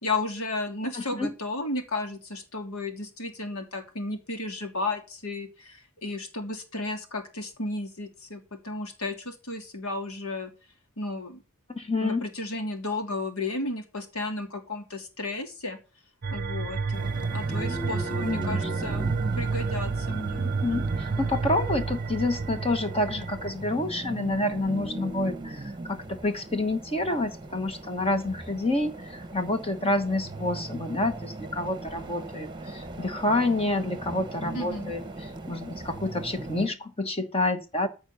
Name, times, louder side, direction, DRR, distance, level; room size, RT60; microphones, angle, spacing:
voice 1, 0.0-10.5 11.0-11.4 12.0-15.8 16.3-20.5 34.5-34.9, left 2 dB, 85° left, 3.0 m, -33 dB
voice 2, 0.9-1.3 11.7-12.2 18.2-18.9 20.4-37.9, left 2 dB, 25° left, 1.2 m, -28 dB
sound 1, 16.2-23.5, right 4 dB, 45° right, 0.6 m, -30 dB
sound 2, 16.9-36.7, right 2 dB, 20° right, 1.1 m, -38 dB
14.5 x 5.3 x 6.9 m
head